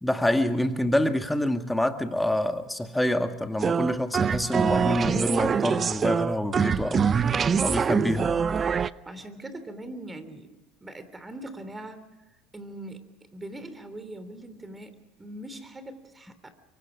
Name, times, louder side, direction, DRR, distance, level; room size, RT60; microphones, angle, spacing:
voice 1, 0.0-7.2 7.6-8.3, left 1 dB, 5° left, 1.9 m, -26 dB
sound 1, 3.6-8.9, right 6 dB, 35° right, 0.6 m, -24 dB
voice 2, 9.0-10.5 10.8-12.1 12.5-13.0 13.3-16.6, right 1 dB, 20° right, 3.1 m, -41 dB
24.5 x 24.0 x 5.2 m
hypercardioid pair, 85°, 0 cm